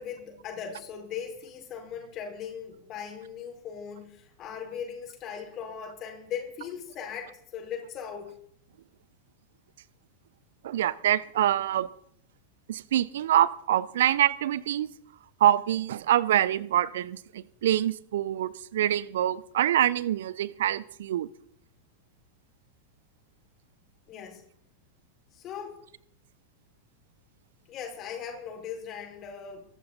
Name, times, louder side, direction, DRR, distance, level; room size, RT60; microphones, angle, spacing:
voice 1, 0.0-8.3 24.1-24.4 25.3-25.8 27.7-29.7, left 7 dB, 35° left, 3 dB, 5.0 m, -39 dB
voice 2, 10.6-11.9 12.7-14.9 15.4-21.3, right 11 dB, 60° right, 20 dB, 0.7 m, -25 dB
23.5 x 12.5 x 4.1 m, 0.66 s
figure-of-eight pair, 90°, 0 cm